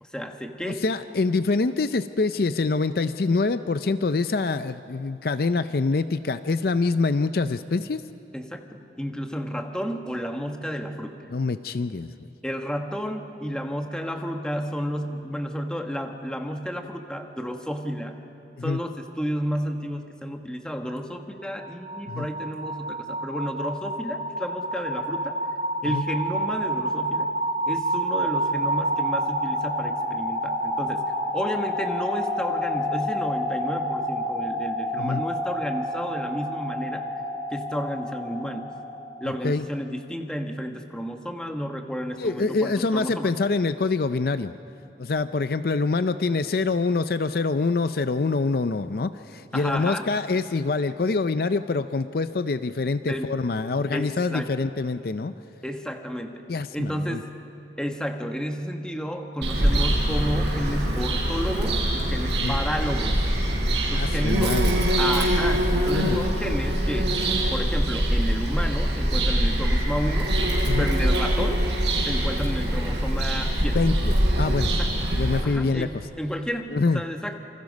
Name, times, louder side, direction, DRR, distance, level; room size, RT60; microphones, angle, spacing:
voice 1, 0.0-0.8 8.3-11.2 12.4-18.2 18.6-25.4 25.8-27.3 27.7-37.1 37.5-38.7 39.2-43.3 49.5-50.1 53.0-53.3 53.9-54.5 55.6-56.4 56.7-57.3 57.8-63.2 63.9-64.6 65.0-67.2 67.5-70.4 70.8-71.6 72.0-73.8 74.8-74.9 75.4-77.4, equal, 5° left, 4 dB, 1.3 m, -31 dB
voice 2, 0.7-8.0 11.3-12.1 18.6-18.8 22.1-22.3 25.8-26.0 35.0-35.2 39.4-39.7 42.2-44.5 45.0-55.3 56.5-57.2 62.4-62.6 63.9-64.9 66.0-66.2 70.6-70.9 73.7-74.7 75.1-75.9 76.7-77.0, left 3 dB, 55° left, 12 dB, 0.5 m, -25 dB
sound 1, 21.4-39.3, equal, 25° right, 7.6 m, -29 dB
Bird vocalization bird call bird song, 59.4-75.4, right 1 dB, 75° right, 5.8 m, -23 dB
28.0 x 25.5 x 5.3 m, 2.8 s
head